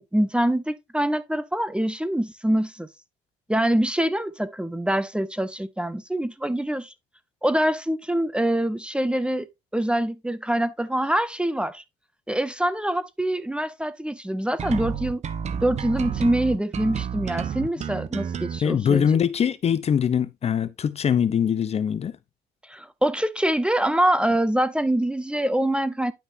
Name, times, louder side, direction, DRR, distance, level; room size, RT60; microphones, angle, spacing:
voice 1, 0.0-2.9 3.5-6.9 7.4-9.5 9.7-11.8 12.3-15.2 15.6-19.1 22.7-26.1, right 1 dB, 5° right, 0.7 m, -24 dB
sound 1, 14.6-18.6, right 8 dB, 40° right, 1.0 m, -30 dB
voice 2, 18.6-22.1, left 8 dB, 40° left, 0.7 m, -22 dB
10.0 x 5.8 x 2.7 m
cardioid pair, 110°, 17 cm